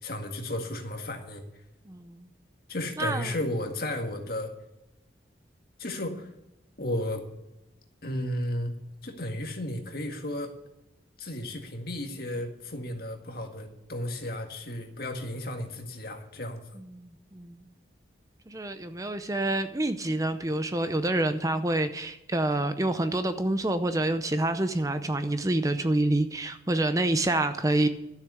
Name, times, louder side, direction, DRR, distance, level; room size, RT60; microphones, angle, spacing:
voice 1, 0.0-1.4 2.7-4.5 5.8-6.3 6.8-7.2 8.0-8.8 9.0-10.5 11.2-16.6, left 1 dB, 55° left, 4 dB, 1.8 m, -33 dB
voice 2, 1.9-2.3 3.0-3.3 16.8-17.6 18.5-27.9, right 1 dB, 20° right, 10 dB, 0.6 m, -27 dB
12.5 x 7.1 x 8.2 m, 0.90 s
head